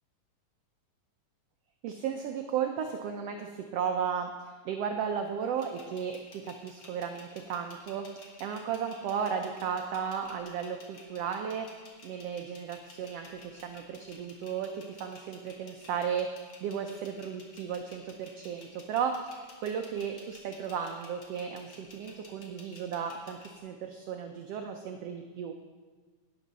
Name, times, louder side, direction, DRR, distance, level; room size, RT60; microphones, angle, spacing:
voice 1, 1.8-11.7 12.0-25.5, right 7 dB, 90° right, 4 dB, 1.4 m, -35 dB
sound 1, 5.6-23.6, left 3 dB, 45° left, 1.7 m, -53 dB
11.5 x 10.0 x 4.0 m, 1.4 s
omnidirectional pair, 3.6 m